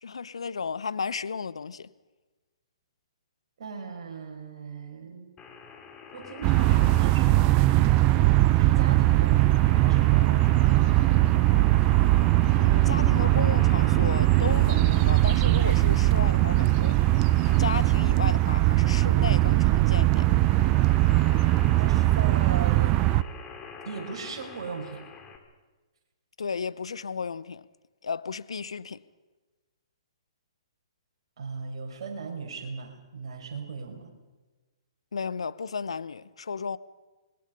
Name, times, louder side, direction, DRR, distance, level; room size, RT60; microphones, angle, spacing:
voice 1, 0.0-1.9 12.5-17.0 17.4-20.3 26.4-27.7 28.0-29.0 35.1-36.8, left 5 dB, 75° left, 0.9 m, -34 dB
voice 2, 3.6-5.4 6.1-7.9 8.6-11.3 21.7-23.2 23.8-25.0 31.4-34.1, right 5 dB, 60° right, 5.8 m, -38 dB
sound 1, 5.4-25.4, left 6 dB, 20° left, 3.1 m, -45 dB
sound 2, 6.4-23.2, right 17 dB, 30° right, 0.6 m, -21 dB
26.0 x 21.5 x 5.4 m
figure-of-eight pair, 125°, 3 cm